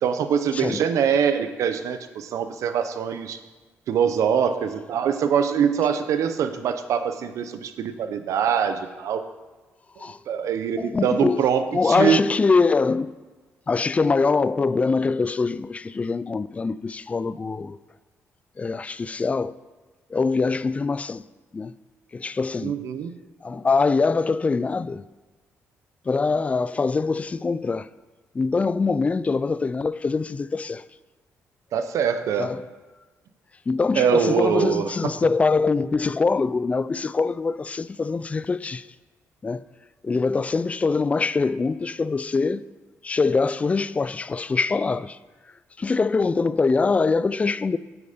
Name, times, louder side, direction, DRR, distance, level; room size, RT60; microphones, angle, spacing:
voice 1, 0.0-3.4 3.9-9.2 10.3-12.3 22.6-23.1 31.7-32.5 34.0-35.1, right 7 dB, 75° right, 0.7 m, -23 dB
voice 2, 10.8-11.4 11.7-13.1 13.7-17.8 18.6-19.6 20.1-21.2 21.5-21.7 22.1-22.7 23.4-25.0 26.1-27.9 28.3-30.9 32.4-32.6 33.7-38.9 39.4-39.6 40.0-42.6 43.0-45.2 45.8-47.8, left 4 dB, 25° left, 0.3 m, -23 dB
8.6 x 8.4 x 5.1 m
cardioid pair, 95°, 5 cm